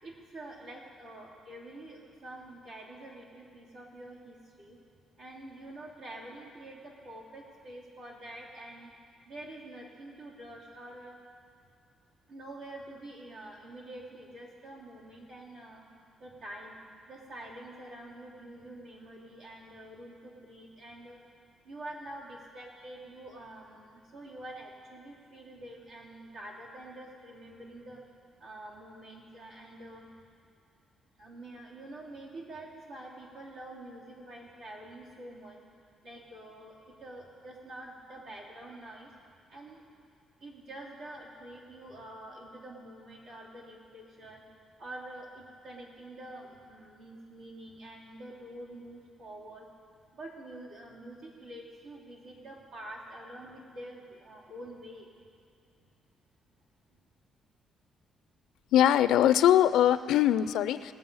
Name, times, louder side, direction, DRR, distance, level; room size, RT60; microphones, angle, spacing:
voice 1, 0.0-4.8 5.2-8.9 9.3-11.2 12.3-15.8 16.2-16.8 17.1-21.2 21.6-28.0 28.4-30.1 31.2-35.6 36.0-39.1 39.5-39.8 40.4-44.4 44.8-49.7 50.1-55.1, right 1 dB, 90° right, -5 dB, 3.1 m, -46 dB
voice 2, 58.7-60.9, left 11 dB, 85° left, 13 dB, 0.4 m, -22 dB
20.0 x 7.2 x 5.5 m, 2.3 s
cardioid pair, 90°, 0 cm